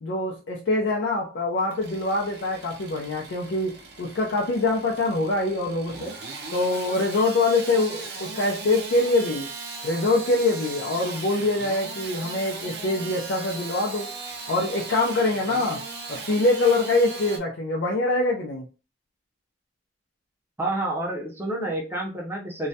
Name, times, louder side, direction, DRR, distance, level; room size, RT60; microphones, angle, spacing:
voice 1, 0.0-6.1 6.5-9.5 9.8-14.1 14.5-15.8 16.1-18.6, left 2 dB, 90° left, -2 dB, 0.5 m, -24 dB
Engine starting / Sawing, 1.6-17.4, right 3 dB, 65° right, 0.5 m, -38 dB
voice 2, 20.6-22.7, right 1 dB, 15° right, -1 dB, 0.5 m, -29 dB
2.3 x 2.0 x 2.6 m, 0.33 s
head